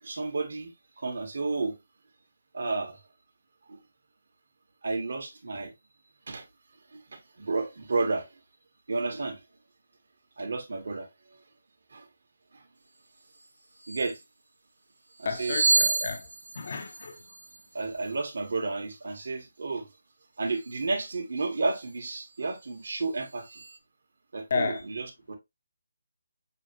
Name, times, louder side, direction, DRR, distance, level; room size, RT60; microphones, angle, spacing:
voice 1, 0.0-1.8 2.5-3.0 3.7-3.8 4.8-5.7 6.3-6.5 6.9-8.3 8.9-9.4 10.4-11.1 11.9-12.1 12.5-12.6 13.9-14.2 15.2-15.6 17.7-19.9 20.4-23.6 24.3-25.4, right 3 dB, 65° right, 1.6 m, -32 dB
sound 1, 13.3-13.5 13.8-14.2 15.1-18.2 20.5-20.8 21.6-21.9 22.3-23.8, right 3 dB, 90° right, 0.8 m, -31 dB
voice 2, 15.2-16.3 16.5-17.2 24.5-24.8, left 5 dB, 50° left, 0.8 m, -32 dB
6.7 x 2.4 x 2.9 m
figure-of-eight pair, 160°, 0 cm